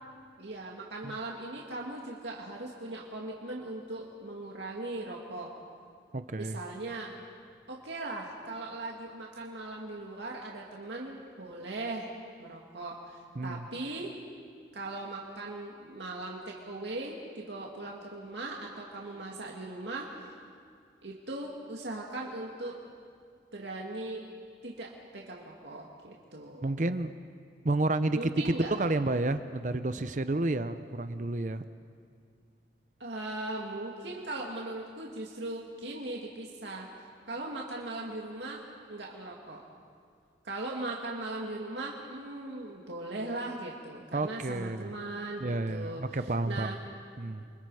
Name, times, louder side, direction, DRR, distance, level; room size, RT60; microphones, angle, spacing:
voice 1, 0.4-5.5 6.4-7.1 7.7-12.1 12.4-14.1 14.7-20.3 21.0-22.8 23.5-24.2 24.6-26.7 28.1-28.7 33.0-36.9 37.3-38.6 38.9-39.6 40.4-46.8, right 2 dB, 75° right, -2 dB, 2.2 m, -39 dB
voice 2, 6.1-6.6 13.4-13.7 26.6-27.1 27.6-31.6 44.1-44.9 45.4-46.7 47.2-47.4, right 2 dB, 45° right, 11 dB, 0.6 m, -30 dB
29.5 x 25.0 x 4.8 m, 2.2 s
head